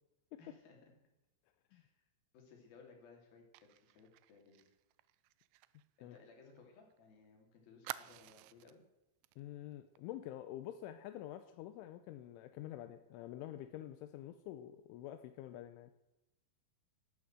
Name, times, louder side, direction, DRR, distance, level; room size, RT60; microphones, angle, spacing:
voice 1, 0.4-0.9 1.7-2.1 2.3-4.7 6.0-8.8, left 4 dB, 55° left, 2 dB, 4.8 m, -61 dB
Fire, 3.5-7.0 7.2-7.3 7.8-8.8 9.2-9.4 9.7-10.0, right 17 dB, 80° right, 2.9 m, -51 dB
voice 2, 9.4-15.9, left 12 dB, 85° left, 9 dB, 3.3 m, -47 dB
12.5 x 11.5 x 7.6 m, 0.91 s
omnidirectional pair, 5.5 m